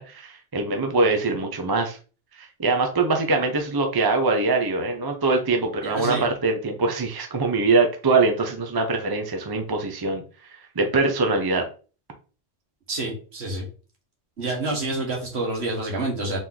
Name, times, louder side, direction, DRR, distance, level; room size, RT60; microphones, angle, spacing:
voice 1, 0.0-2.0 2.4-10.2 10.8-11.6, right 3 dB, 25° right, 4 dB, 0.6 m, -23 dB
voice 2, 5.8-6.3 12.9-13.7 14.4-16.4, right 2 dB, 65° right, 0 dB, 1.8 m, -28 dB
4.1 x 3.1 x 3.8 m, 0.36 s
omnidirectional pair, 1.2 m